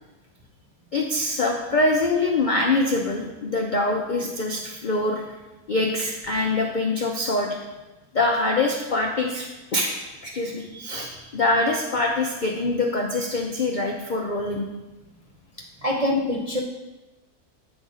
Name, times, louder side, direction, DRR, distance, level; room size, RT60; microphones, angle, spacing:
voice 1, 0.9-5.2 5.7-7.6 8.1-10.0 10.2-14.7, left 2 dB, 65° left, 0 dB, 0.4 m, -24 dB
voice 2, 15.8-16.6, left 1 dB, 50° right, -3 dB, 0.4 m, -24 dB
8.4 x 4.0 x 4.9 m, 1.1 s
omnidirectional pair, 1.7 m